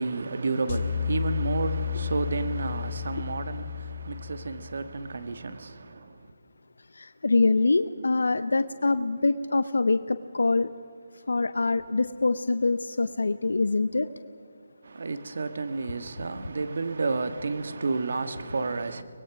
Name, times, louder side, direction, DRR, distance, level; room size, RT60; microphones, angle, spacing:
voice 1, 0.0-6.2 14.8-19.0, right 3 dB, 65° right, 1.4 m, -31 dB
sound 1, 0.7-5.0, left 7 dB, 50° left, 1.3 m, -32 dB
voice 2, 6.9-10.7 11.3-14.1, left 3 dB, 80° left, 0.6 m, -24 dB
24.0 x 20.0 x 5.9 m
hypercardioid pair, 160°, 0 cm